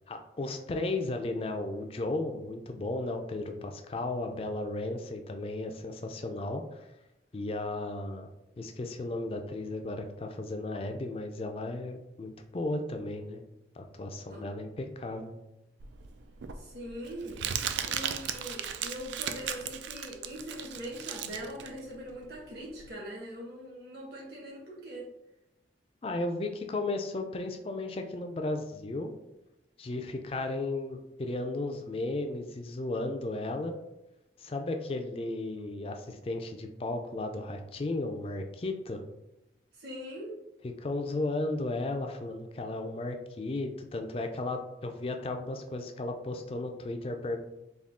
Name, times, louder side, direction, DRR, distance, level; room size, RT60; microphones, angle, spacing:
voice 1, 0.1-6.9 7.3-8.3 8.6-13.4 13.8-15.3 26.0-29.1 29.8-33.7 34.4-39.0 40.6-47.4, left 2 dB, 30° left, 5 dB, 0.3 m, -35 dB
Crumpling crinkling, 15.8-22.9, right 8 dB, 85° right, 0.3 m, -36 dB
voice 2, 16.6-25.1 39.7-40.3, equal, 65° right, -4 dB, 1.3 m, -42 dB
3.6 x 2.3 x 3.6 m, 0.92 s
head